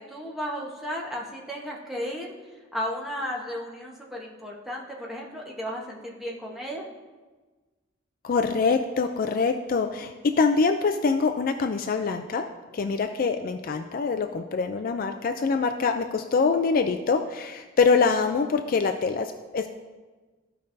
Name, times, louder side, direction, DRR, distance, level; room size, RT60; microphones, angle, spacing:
voice 1, 0.0-2.3 2.7-6.8, equal, ahead, -3 dB, 1.1 m, -34 dB
voice 2, 8.2-12.5 12.7-19.7, left 4 dB, 45° left, 7 dB, 0.3 m, -24 dB
14.5 x 5.3 x 2.6 m, 1.3 s
head